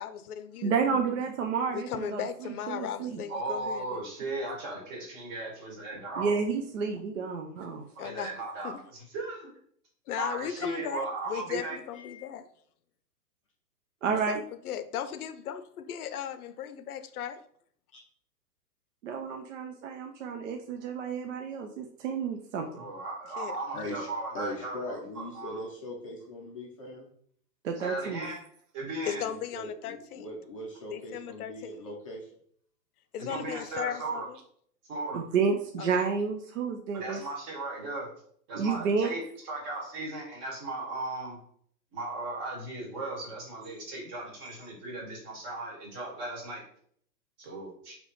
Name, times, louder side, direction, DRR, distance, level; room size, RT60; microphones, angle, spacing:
voice 1, 0.0-0.8 1.7-4.0 8.0-8.3 8.6-8.8 10.1-12.5 14.3-14.4 14.6-17.4 23.4-23.9 29.0-30.3 30.9-31.8 33.1-34.4 35.8-36.1, left 9 dB, 65° left, 11 dB, 0.6 m, -37 dB
voice 2, 0.6-3.2 6.2-7.9 14.0-14.4 19.0-22.8 27.6-28.3 35.1-37.2 38.5-39.1, right 5 dB, 55° right, 4 dB, 0.5 m, -30 dB
voice 3, 3.3-6.3 7.9-9.5 10.2-11.8 22.8-25.7 27.8-28.4 28.7-29.2 33.2-34.2 34.9-35.2 36.9-38.1 38.5-41.4 41.9-46.6 47.4-48.0, right 2 dB, 30° right, -3 dB, 1.4 m, -37 dB
voice 4, 11.9-12.2 17.9-18.0 23.7-27.1 29.2-32.3, left 1 dB, 25° left, -3 dB, 0.5 m, -40 dB
3.4 x 2.9 x 4.0 m, 0.63 s
hypercardioid pair, 150°, 47 cm